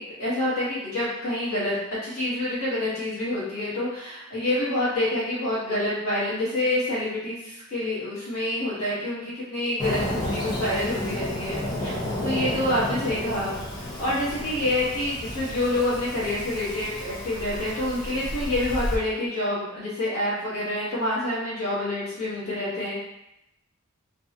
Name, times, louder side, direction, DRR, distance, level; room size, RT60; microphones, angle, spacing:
voice 1, 0.0-1.8 2.0-11.9 12.2-22.9, left 1 dB, 75° left, -9 dB, 1.1 m, -27 dB
Fireworks, 9.8-19.0, left 1 dB, 20° left, 0.4 m, -32 dB
2.6 x 2.2 x 2.5 m, 0.85 s
head